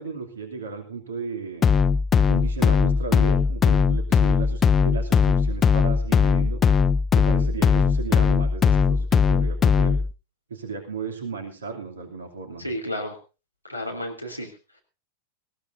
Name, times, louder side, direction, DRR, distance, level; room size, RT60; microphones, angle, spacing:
voice 1, 0.0-1.7 2.3-6.6 7.1-10.0 10.5-12.6, right 5 dB, 70° right, 5 dB, 2.8 m, -35 dB
sound 1, 1.6-10.1, left 6 dB, 20° left, 0.6 m, -19 dB
voice 2, 12.6-13.2 13.7-14.5, left 1 dB, 90° right, 4 dB, 2.9 m, -31 dB
20.0 x 16.0 x 2.6 m, 0.31 s
figure-of-eight pair, 90°, 0 cm